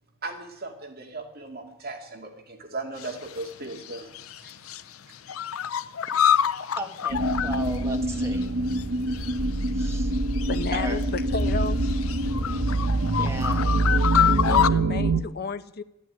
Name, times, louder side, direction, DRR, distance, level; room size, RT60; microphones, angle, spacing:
voice 1, 0.2-4.1 4.4-4.5 6.1-6.2, right 2 dB, 45° right, 2 dB, 2.3 m, -37 dB
sound 1, 3.0-3.5 3.8-4.8 5.1-8.4 8.7-8.8 9.1-11.0 11.4-14.7, left 9 dB, 80° left, 0.6 m, -27 dB
voice 2, 6.8-8.5 9.7-10.1 10.7-11.0 13.2-13.6, right 1 dB, 15° right, 2 dB, 1.8 m, -36 dB
sound 2, 7.1-15.2, right 2 dB, 65° right, 1.0 m, -25 dB
voice 3, 10.5-11.8 14.5-15.8, left 4 dB, 50° left, 11 dB, 0.8 m, -32 dB
12.5 x 12.0 x 9.3 m, 0.86 s
head